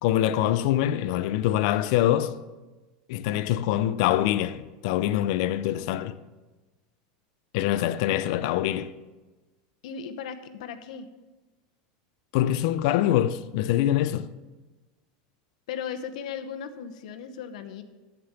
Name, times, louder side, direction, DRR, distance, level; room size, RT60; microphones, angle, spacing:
voice 1, 0.0-2.4 3.1-6.2 7.5-8.9 12.3-14.3, left 12 dB, 55° left, 0.5 m, -24 dB
voice 2, 9.8-11.1 15.7-17.8, left 7 dB, 75° left, 0.9 m, -36 dB
13.5 x 5.1 x 5.9 m
supercardioid pair, 165°, 4 cm